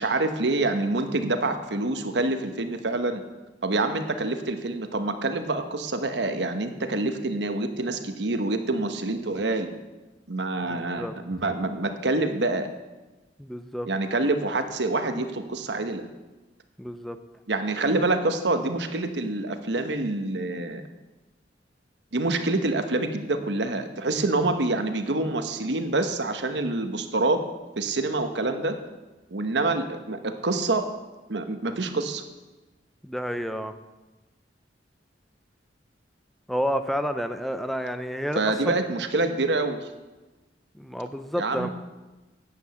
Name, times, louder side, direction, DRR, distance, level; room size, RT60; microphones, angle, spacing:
voice 1, 0.0-3.2 3.6-9.7 10.3-12.7 13.9-16.1 17.5-20.8 22.1-27.4 27.8-28.8 29.3-30.8 31.3-32.2 38.3-39.9 41.4-41.7, right 2 dB, 85° right, 7 dB, 1.1 m, -26 dB
voice 2, 10.7-11.1 13.4-13.9 16.8-17.2 33.0-33.7 36.5-38.8 40.7-41.7, equal, ahead, 9 dB, 0.5 m, -30 dB
9.7 x 8.5 x 7.0 m, 1.1 s
head